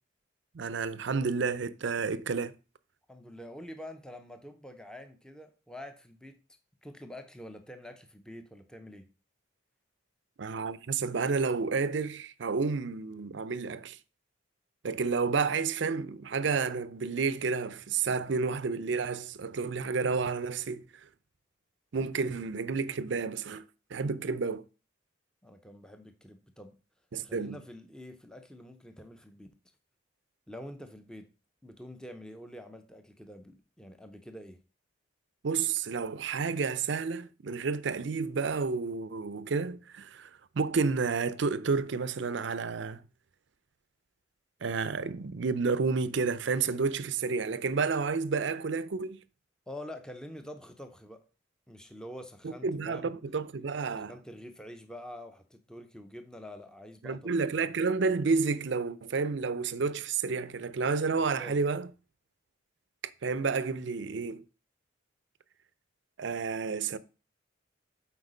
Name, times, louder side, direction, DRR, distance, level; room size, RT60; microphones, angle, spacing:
voice 1, 0.5-2.5 10.4-14.0 14.8-20.8 21.9-23.6 23.9-24.6 27.1-27.6 35.4-40.3 40.5-43.0 44.6-49.2 52.4-54.1 57.0-61.9 63.2-64.4 66.2-67.0, right 4 dB, 60° right, 0.5 m, -30 dB
voice 2, 3.1-6.4 6.8-9.1 25.4-26.8 27.2-29.5 30.5-31.3 31.6-34.6 49.7-51.2 51.7-53.2 53.9-57.3 61.2-61.6, left 1 dB, 5° left, 0.6 m, -46 dB
8.1 x 4.5 x 5.0 m
head